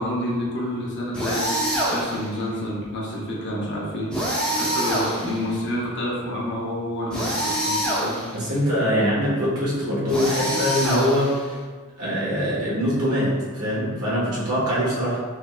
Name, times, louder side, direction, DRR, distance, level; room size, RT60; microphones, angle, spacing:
voice 1, 0.0-1.5 1.9-4.1 4.5-8.2 8.9-9.0, left 1 dB, 55° left, -4 dB, 0.8 m, -28 dB
sound 1, 1.1-2.3 4.1-5.5 7.1-8.4 10.1-11.5, equal, 5° left, 0.7 m, -25 dB
voice 2, 8.3-11.3 12.0-13.3 13.5-15.2, equal, 80° right, -7 dB, 1.2 m, -23 dB
3.5 x 3.2 x 2.2 m, 1.5 s
head